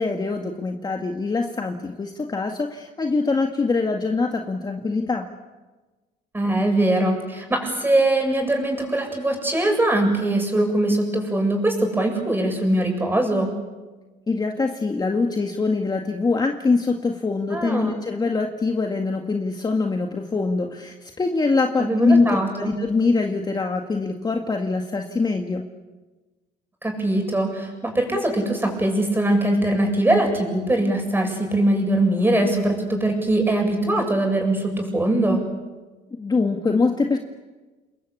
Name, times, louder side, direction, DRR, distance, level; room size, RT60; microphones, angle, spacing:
voice 1, 0.0-5.3 14.3-25.6 36.2-37.2, left 3 dB, 25° left, 3 dB, 1.9 m, -23 dB
voice 2, 6.3-13.5 17.5-17.9 21.8-22.8 26.8-35.4, right 1 dB, 10° right, 3 dB, 7.7 m, -22 dB
29.0 x 21.5 x 8.5 m, 1.2 s
cardioid pair, 110°, 17 cm